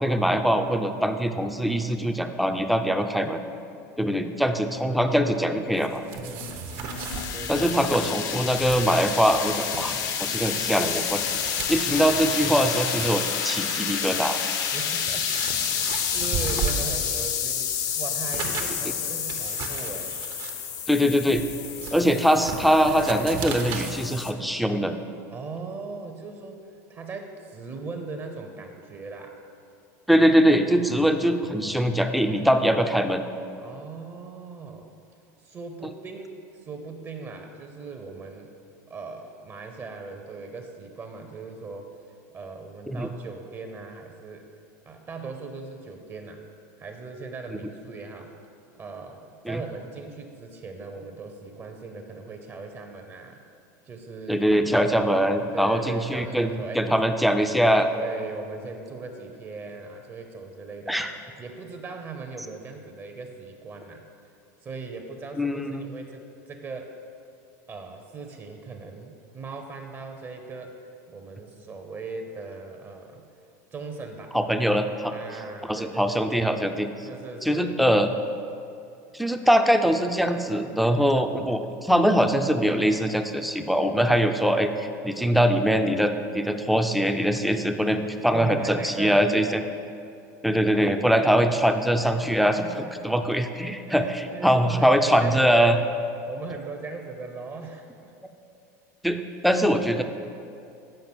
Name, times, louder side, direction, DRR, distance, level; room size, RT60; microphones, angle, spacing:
voice 1, 0.0-3.4 4.0-6.0 7.5-9.9 10.2-11.2 11.7-14.4 20.9-21.4 21.9-24.9 30.1-33.2 42.9-43.1 49.5-49.6 54.3-57.9 60.9-61.1 65.4-65.9 74.3-75.1 75.7-76.9 77.4-78.1 79.1-89.6 90.4-95.8 99.0-100.0, equal, ahead, 6 dB, 0.5 m, -22 dB
voice 2, 4.0-4.4 6.2-6.6 7.3-7.9 14.7-15.3 15.7-17.7 18.0-20.2 25.3-26.6 26.9-29.4 33.6-34.9 35.4-38.5 38.9-41.9 42.3-44.5 44.9-46.4 46.8-48.3 48.7-53.4 53.8-54.4 55.5-56.9 57.9-61.0 61.4-64.0 64.6-66.9 67.7-73.2 73.7-74.4 75.1-76.2 77.0-77.7 88.3-89.2 92.2-92.5 93.9-95.7 96.3-98.1, right 4 dB, 30° right, 4 dB, 0.8 m, -39 dB
sound 1, 5.7-7.3 7.6-8.3 8.8-9.8 10.4-12.7 13.0-13.3 14.1-14.2 14.7-17.4 17.7-23.9, right 6 dB, 60° right, 0.9 m, -36 dB
sound 2, 6.1-24.3, left 8 dB, 45° left, 0.7 m, -29 dB
7.8 x 5.0 x 6.0 m, 2.6 s
supercardioid pair, 105°, 9 cm